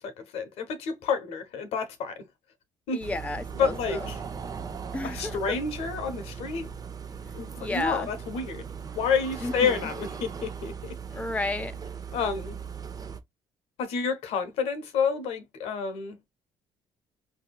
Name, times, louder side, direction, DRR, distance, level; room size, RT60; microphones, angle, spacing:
voice 1, 0.0-2.2 2.9-3.0 3.6-4.2 5.0-6.7 7.3-8.7 8.9-11.0 12.1-12.6 13.8-16.2, left 6 dB, 75° left, 1.0 m, -29 dB
voice 2, 2.9-4.1 4.9-5.4 7.6-8.1 9.4-9.9 11.1-11.7, left 2 dB, 15° left, 0.7 m, -32 dB
sound 1, 3.0-13.2, right 6 dB, 35° right, 0.7 m, -38 dB
4.7 x 2.8 x 2.2 m
supercardioid pair, 65°, 10 cm